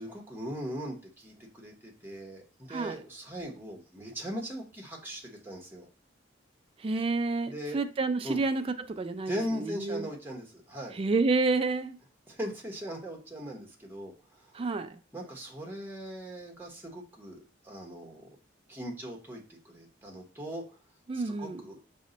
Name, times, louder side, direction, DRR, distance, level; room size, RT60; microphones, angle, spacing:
voice 1, 0.0-5.9 7.4-7.8 8.2-8.4 9.3-11.0 12.3-14.6 15.1-17.4 17.6-18.3 18.7-20.8 21.1-21.8, equal, 10° right, 0 dB, 0.8 m, -39 dB
voice 2, 6.8-10.1 11.0-12.0 14.5-15.0 21.1-21.6, right 3 dB, 30° right, 10 dB, 0.3 m, -29 dB
5.2 x 2.1 x 3.8 m, 0.36 s
head